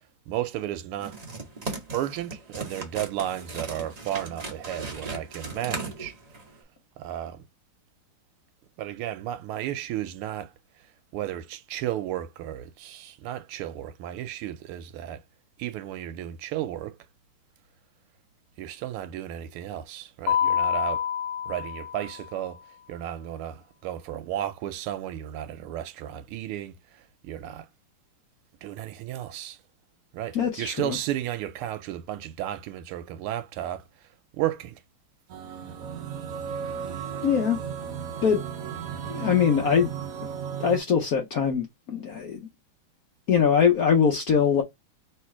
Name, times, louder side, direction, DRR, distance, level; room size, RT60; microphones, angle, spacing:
voice 1, 0.3-1.2 1.9-6.1 7.0-7.4 8.8-10.5 11.1-15.2 15.6-17.0 18.6-21.0 21.5-22.6 22.9-27.7 28.6-29.6 30.1-33.8 34.4-34.8, right 12 dB, 90° right, 1.5 m, -33 dB
sound 1, 1.0-6.6, right 3 dB, 30° right, 0.7 m, -37 dB
Mallet percussion, 20.3-22.3, left 9 dB, 90° left, 1.7 m, -27 dB
voice 2, 30.3-31.0 37.2-37.6 38.2-38.4 39.0-39.9 40.6-42.4 43.3-44.6, left 7 dB, 70° left, 0.8 m, -22 dB
sound 2, 35.3-40.8, right 7 dB, 70° right, 0.8 m, -35 dB
3.4 x 3.1 x 4.6 m
omnidirectional pair, 2.4 m